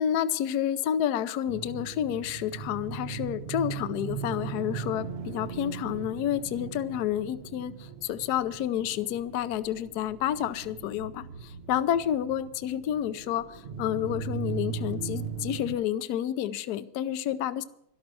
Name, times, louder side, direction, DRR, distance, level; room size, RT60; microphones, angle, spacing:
voice 1, 0.0-17.6, left 10 dB, 70° left, 14 dB, 0.9 m, -30 dB
sound 1, 1.5-15.8, right 7 dB, 60° right, 0.6 m, -38 dB
12.5 x 12.5 x 6.2 m, 0.77 s
omnidirectional pair, 2.4 m